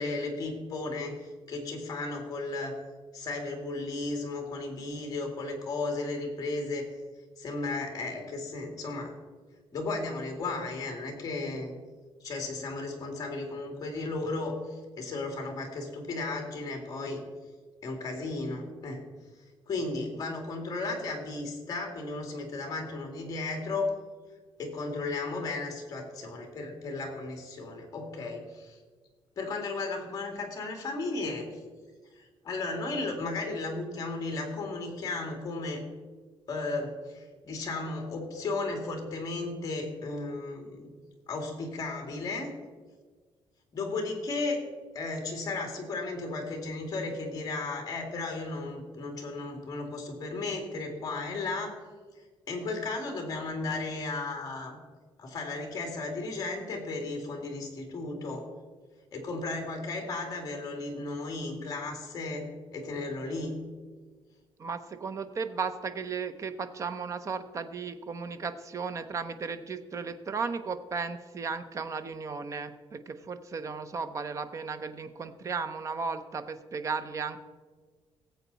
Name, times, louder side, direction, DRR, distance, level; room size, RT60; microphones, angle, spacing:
voice 1, 0.0-2.8 3.1-6.8 7.4-9.1 9.7-11.7 12.2-17.2 17.8-19.0 19.7-23.9 24.6-28.8 29.4-31.6 32.2-35.8 36.5-40.9 41.3-42.5 43.7-44.6 44.9-51.8 52.5-54.8 55.2-58.5 59.1-62.5 62.7-63.5, left 3 dB, 35° left, 3 dB, 2.3 m, -34 dB
voice 2, 64.6-77.4, right 5 dB, 30° right, 10 dB, 0.7 m, -35 dB
18.0 x 8.1 x 4.1 m, 1.4 s
cardioid pair, 165°, 10 cm